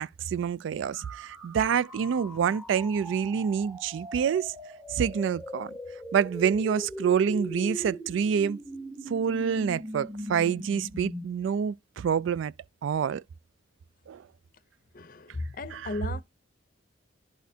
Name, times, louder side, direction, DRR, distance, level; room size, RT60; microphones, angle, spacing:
voice 1, 0.0-4.5 4.9-5.7 6.1-8.6 9.1-12.5 12.8-13.2 14.1-14.2 15.7-15.8, right 7 dB, 80° right, 0.3 m, -27 dB
sound 1, 0.9-11.3, equal, 5° right, 0.7 m, -40 dB
voice 2, 14.9-16.2, left 2 dB, 45° left, 0.6 m, -35 dB
11.0 x 4.1 x 2.7 m
head